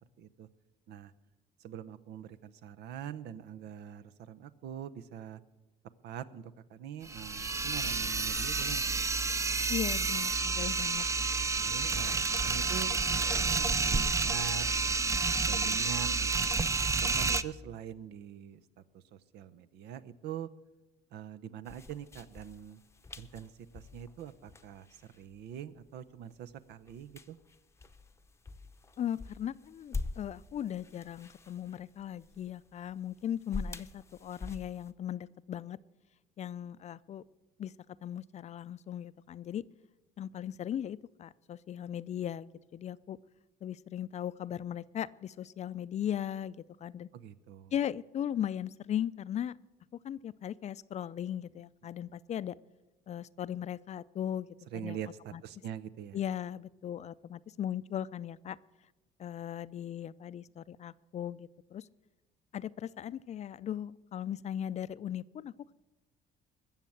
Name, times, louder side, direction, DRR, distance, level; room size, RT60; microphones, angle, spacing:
voice 1, 0.2-0.5 0.9-1.1 1.6-5.4 6.0-9.0 11.6-14.7 15.0-16.6 17.0-20.5 21.1-22.8 23.2-27.4 47.1-47.7 54.7-56.2, right 9 dB, 80° right, 12 dB, 0.8 m, -44 dB
sound 1, 7.0-17.4, right 4 dB, 15° right, 0.5 m, -30 dB
voice 2, 9.7-11.1 29.0-35.8 36.4-37.2 37.6-37.7 38.0-39.6 40.2-43.2 43.6-46.6 46.8-47.1 47.7-49.5 50.0-52.6 53.1-54.5 54.7-55.0 55.3-55.4 56.1-58.6 59.2-61.9 62.5-65.7, left 10 dB, 40° left, 17 dB, 0.4 m, -38 dB
sound 2, 21.7-34.9, left 3 dB, 15° left, 0.7 m, -46 dB
21.0 x 7.4 x 7.9 m, 1.1 s
cardioid pair, 110°, 17 cm